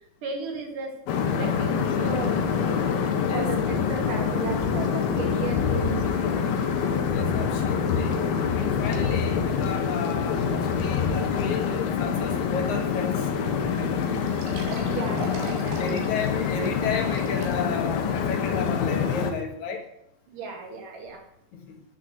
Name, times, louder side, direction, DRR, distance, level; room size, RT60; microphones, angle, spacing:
voice 1, 0.2-1.0 1.4-2.4 3.3-6.1 9.9-10.0 14.1-14.2 14.8-15.8 20.3-21.2, right 5 dB, 60° right, 1 dB, 3.5 m, -35 dB
sound 1, 1.1-19.3, left 6 dB, 80° left, 3.0 m, -26 dB
voice 2, 7.1-8.2 8.6-13.3 13.7-14.1 15.8-19.8 21.5-21.8, left 5 dB, 55° left, 2 dB, 2.7 m, -33 dB
sound 2, 13.4-13.5 13.8-13.9 14.3-17.9 18.3-18.4 19.0-19.1, right 5 dB, 90° right, 3.7 m, -41 dB
10.0 x 6.4 x 7.5 m, 0.79 s
omnidirectional pair, 4.4 m